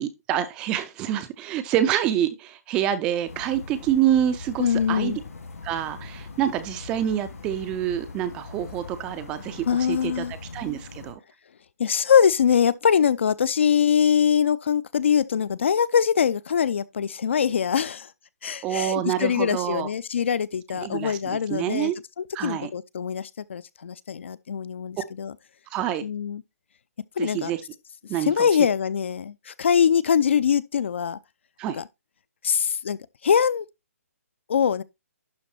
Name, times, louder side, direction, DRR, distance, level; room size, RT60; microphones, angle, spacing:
voice 1, 0.0-5.2 5.6-10.2 10.5-11.2 18.6-19.9 20.8-22.0 22.3-22.7 25.7-26.0 27.2-27.6 28.1-28.5 31.6-31.8, right 11 dB, 10° right, 0.4 m, -27 dB
sound 1, 3.3-11.1, left 4 dB, 80° left, 3.5 m, -41 dB
voice 2, 4.6-5.2 9.7-10.3 11.8-18.1 18.4-21.9 22.2-25.3 26.0-26.4 27.2-27.5 28.2-31.2 31.7-31.8 32.4-33.7 34.5-34.8, left 7 dB, 50° left, 0.5 m, -23 dB
11.5 x 4.0 x 4.3 m
hypercardioid pair, 170°, 8 cm